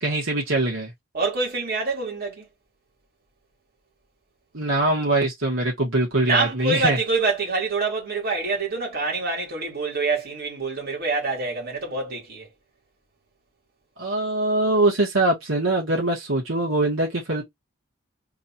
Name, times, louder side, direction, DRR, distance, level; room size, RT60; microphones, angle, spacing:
voice 1, 0.0-0.9 4.5-7.0 14.0-17.4, right 2 dB, 80° right, 1.9 m, -23 dB
voice 2, 1.1-2.5 6.2-12.5, right 3 dB, 50° right, 2.4 m, -26 dB
3.9 x 2.7 x 4.3 m
head